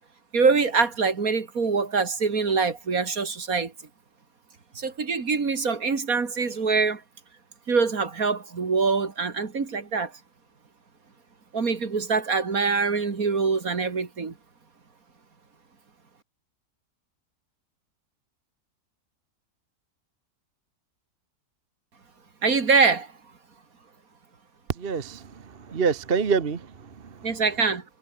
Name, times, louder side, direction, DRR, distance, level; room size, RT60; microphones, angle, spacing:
voice 1, 0.3-3.7 4.7-7.0 7.7-10.1 11.5-14.3 22.4-23.1 27.2-27.8, right 4 dB, 60° right, 2.7 m, -24 dB
voice 2, 24.7-27.3, right 5 dB, 40° right, 1.3 m, -27 dB
omnidirectional pair, 1.7 m